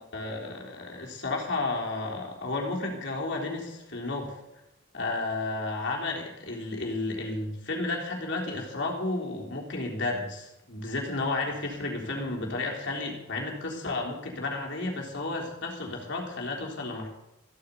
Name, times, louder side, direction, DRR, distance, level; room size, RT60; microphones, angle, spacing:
voice 1, 0.1-4.4 4.9-17.1, left 2 dB, 55° left, -1 dB, 3.8 m, -32 dB
15.0 x 9.7 x 8.3 m, 0.92 s
head